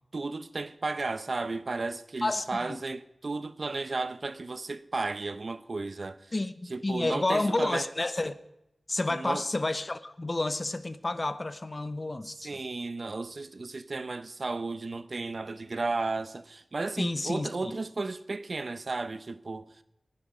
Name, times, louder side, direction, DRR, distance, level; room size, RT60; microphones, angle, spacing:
voice 1, 0.1-6.3 6.7-7.9 9.1-9.5 12.4-19.8, right 3 dB, 60° right, 0.8 m, -34 dB
voice 2, 2.2-2.8 6.3-8.3 8.9-12.6 17.0-17.7, left 2 dB, 35° left, 1.0 m, -30 dB
24.0 x 10.0 x 5.0 m
wide cardioid pair, 80°, 0 cm